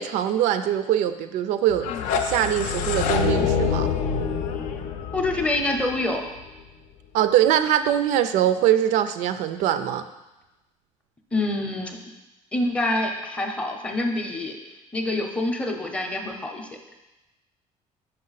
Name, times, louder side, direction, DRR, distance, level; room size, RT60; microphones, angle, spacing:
voice 1, 0.0-1.9 2.2-3.9 7.1-10.1, right 11 dB, 80° right, 10 dB, 0.4 m, -22 dB
sound 1, 1.7-6.6, left 6 dB, 85° left, 0.6 m, -26 dB
voice 2, 5.1-6.2 11.3-12.0 12.5-14.5 14.9-16.7, left 2 dB, 10° left, 2 dB, 0.6 m, -26 dB
5.6 x 5.4 x 4.0 m, 1.0 s
cardioid pair, 170°, 13 cm